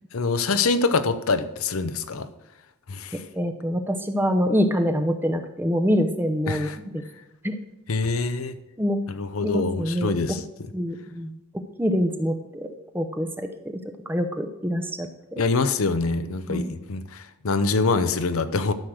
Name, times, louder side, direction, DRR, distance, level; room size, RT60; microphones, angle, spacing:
voice 1, 0.1-2.3 2.9-3.2 6.5-6.8 7.9-8.6 9.1-10.4 15.4-18.7, left 4 dB, 85° left, 11 dB, 0.7 m, -25 dB
voice 2, 3.3-7.0 7.4-7.6 8.8-9.0 9.4-10.4 10.7-11.3 11.8-12.7 12.9-13.8 14.1-15.4 16.5-16.7, equal, 10° right, 7 dB, 0.7 m, -25 dB
12.0 x 6.4 x 6.2 m, 0.92 s
head